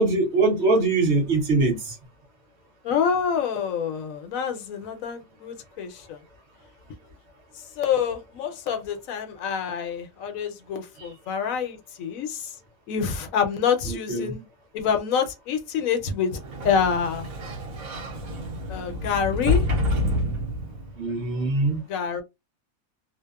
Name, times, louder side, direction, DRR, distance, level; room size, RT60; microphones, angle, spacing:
voice 1, 0.0-2.0 13.9-14.3 21.0-21.8, right 3 dB, 55° right, 1.0 m, -22 dB
voice 2, 2.8-6.2 7.8-12.5 12.9-14.4 14.7-17.3 18.7-19.8 21.9-22.2, left 7 dB, 75° left, 1.0 m, -27 dB
Sliding door, 16.3-21.0, left 2 dB, 80° right, 1.2 m, -28 dB
2.8 x 2.0 x 2.2 m
omnidirectional pair, 1.5 m